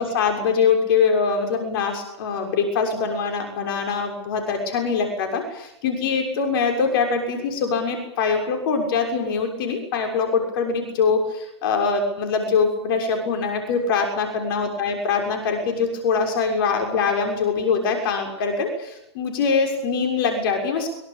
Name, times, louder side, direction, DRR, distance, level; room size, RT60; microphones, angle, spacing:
voice 1, 0.0-20.9, left 5 dB, 55° left, 3 dB, 6.6 m, -23 dB
24.0 x 23.5 x 8.8 m, 0.84 s
hypercardioid pair, 110°, 14 cm